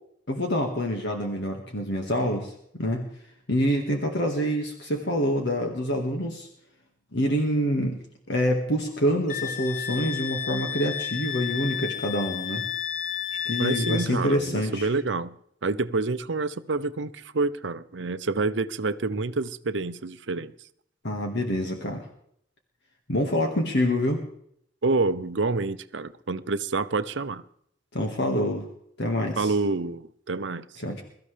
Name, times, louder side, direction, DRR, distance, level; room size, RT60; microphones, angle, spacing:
voice 1, 0.3-3.1 3.5-6.5 7.1-8.0 8.3-12.7 13.3-14.9 21.0-22.1 23.1-24.2 27.9-28.7 29.0-29.5 30.8-31.0, equal, 65° left, 2 dB, 1.8 m, -26 dB
Wind instrument woodwind instrument, 9.3-14.1, left 10 dB, 45° left, 1.1 m, -32 dB
voice 2, 13.6-15.4 15.6-20.5 24.8-27.4 29.4-30.7, right 3 dB, 70° right, 13 dB, 0.7 m, -28 dB
23.0 x 13.5 x 3.4 m, 0.69 s
head